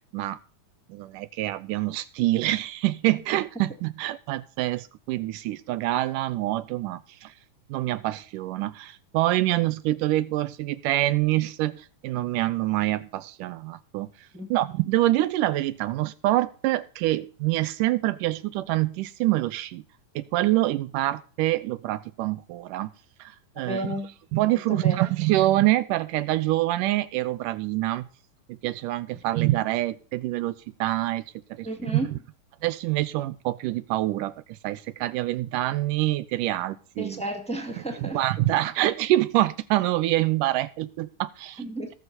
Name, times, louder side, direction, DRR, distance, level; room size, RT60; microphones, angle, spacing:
voice 1, 0.9-7.3 7.7-14.1 14.5-19.8 20.2-22.9 23.2-23.9 24.3-28.1 28.6-31.2 31.5-32.1 32.6-34.3 34.6-37.2 38.0-41.6, right 16 dB, 80° right, 16 dB, 2.2 m, -26 dB
voice 2, 23.5-24.1 24.5-25.1 29.1-29.2 31.6-32.1 37.0-38.2 41.6-41.9, right 1 dB, 5° left, 3 dB, 1.1 m, -33 dB
18.0 x 7.0 x 4.1 m, 0.39 s
omnidirectional pair, 4.0 m